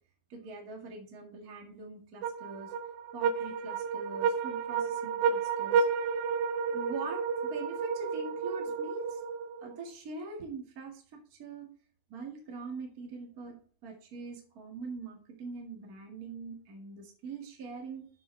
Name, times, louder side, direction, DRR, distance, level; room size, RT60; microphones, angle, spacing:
voice 1, 0.3-2.7 3.1-5.8 6.7-7.2 7.5-9.2 9.6-11.7 12.1-13.6 13.8-18.1, right 3 dB, 35° right, 1 dB, 1.5 m, -43 dB
sound 1, 2.2-9.8, right 6 dB, 70° right, 1.9 m, -31 dB
11.0 x 7.0 x 3.3 m, 0.42 s
omnidirectional pair, 4.4 m